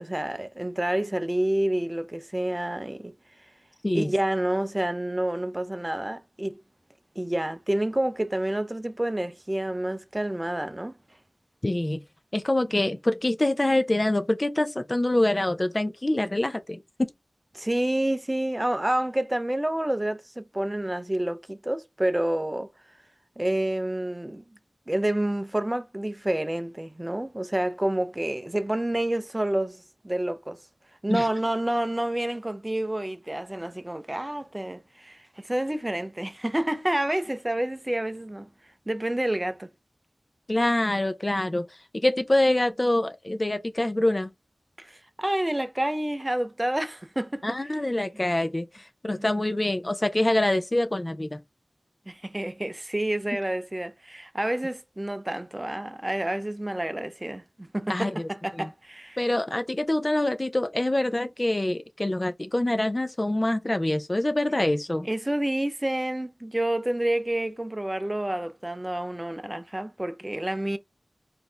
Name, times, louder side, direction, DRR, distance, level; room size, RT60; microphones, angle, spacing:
voice 1, 0.0-3.1 3.9-6.6 7.2-10.9 17.5-22.7 23.4-24.4 24.9-30.6 31.0-38.5 38.9-39.7 44.8-47.6 49.1-49.3 52.1-59.3 65.0-70.8, right 1 dB, 20° right, 0.6 m, -28 dB
voice 2, 11.6-12.0 12.3-17.1 31.1-31.3 40.5-41.7 42.0-44.3 47.4-48.7 49.0-51.4 57.9-58.3 58.6-58.7 59.2-65.1, left 1 dB, 30° left, 0.7 m, -25 dB
4.5 x 2.7 x 3.4 m
wide cardioid pair, 55°, 0 cm